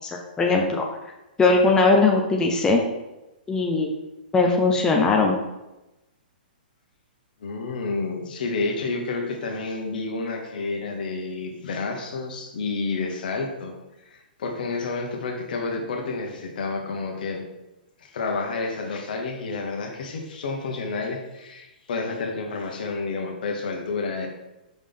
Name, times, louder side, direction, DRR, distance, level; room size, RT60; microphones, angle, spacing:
voice 1, 0.0-0.9 1.4-2.8 3.5-3.9 4.3-5.4, left 3 dB, 15° left, 1 dB, 0.7 m, -20 dB
voice 2, 7.4-13.7 14.0-17.4 18.0-24.3, left 3 dB, 65° left, 3 dB, 1.2 m, -30 dB
5.3 x 5.1 x 3.7 m, 0.97 s
hypercardioid pair, 125°, 5 cm